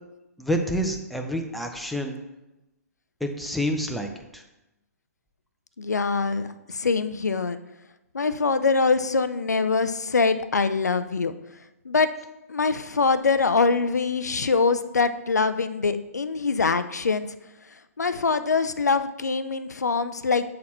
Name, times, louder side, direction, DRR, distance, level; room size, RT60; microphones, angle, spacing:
voice 1, 0.4-2.2 3.2-4.4, equal, ahead, 3 dB, 0.5 m, -28 dB
voice 2, 5.8-7.6 8.1-11.3 11.9-12.1 12.5-17.3 18.0-20.4, left 4 dB, 85° left, 12 dB, 0.4 m, -23 dB
7.4 x 4.1 x 4.2 m, 0.97 s
figure-of-eight pair, 125°, 9 cm